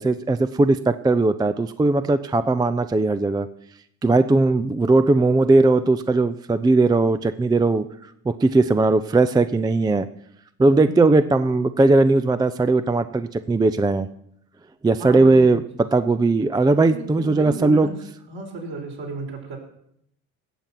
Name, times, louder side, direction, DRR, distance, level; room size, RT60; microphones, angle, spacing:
voice 1, 0.0-3.5 4.0-7.8 8.3-10.1 10.6-14.1 14.8-15.6 15.9-17.9, right 3 dB, 10° right, 12 dB, 0.4 m, -18 dB
voice 2, 10.8-11.3 15.0-15.5 16.8-17.9 18.3-19.6, right 3 dB, 55° right, 0 dB, 4.9 m, -33 dB
18.0 x 7.5 x 5.9 m, 0.73 s
hypercardioid pair, 60°, 46 cm